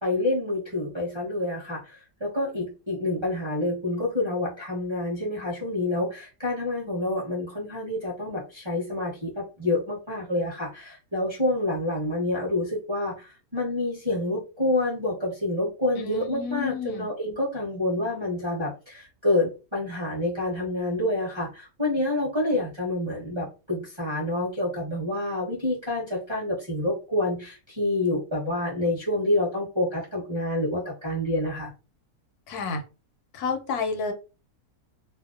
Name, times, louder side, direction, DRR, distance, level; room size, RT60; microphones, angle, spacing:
voice 1, 0.0-1.9 2.2-31.7, left 1 dB, 25° right, -6 dB, 0.7 m, -28 dB
voice 2, 16.0-17.1 32.5-32.8 33.3-34.1, left 5 dB, 80° left, 6 dB, 1.1 m, -30 dB
2.6 x 2.0 x 2.4 m, 0.31 s
omnidirectional pair, 1.6 m